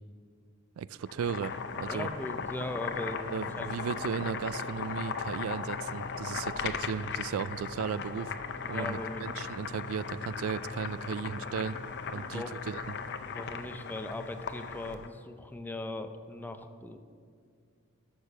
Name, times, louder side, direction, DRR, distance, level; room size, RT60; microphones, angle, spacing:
voice 1, 0.8-2.1 3.3-8.4 8.7-11.8 12.1-12.9, right 6 dB, 80° right, 17 dB, 0.3 m, -35 dB
Boiling, 1.0-15.1, left 5 dB, 55° left, 0.7 m, -37 dB
voice 2, 1.8-3.2 3.6-3.9 8.6-9.2 12.1-12.6 13.2-17.0, left 2 dB, 10° left, 7 dB, 0.6 m, -39 dB
12.0 x 6.7 x 6.8 m, 2.2 s
head